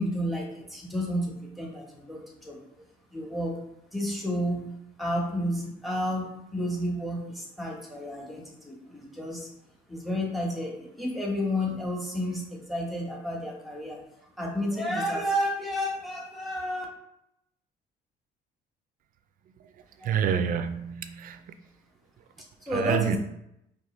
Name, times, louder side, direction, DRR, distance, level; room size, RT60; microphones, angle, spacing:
voice 1, 0.0-2.8 3.1-3.6 3.9-4.7 5.0-9.5 9.9-14.0 14.4-16.8 20.0-20.2 22.6-23.2, equal, ahead, -1 dB, 1.1 m, -31 dB
voice 2, 20.0-21.4 22.7-23.2, right 8 dB, 55° right, 9 dB, 0.4 m, -27 dB
4.4 x 2.8 x 3.1 m, 0.81 s
cardioid pair, 110°, 17 cm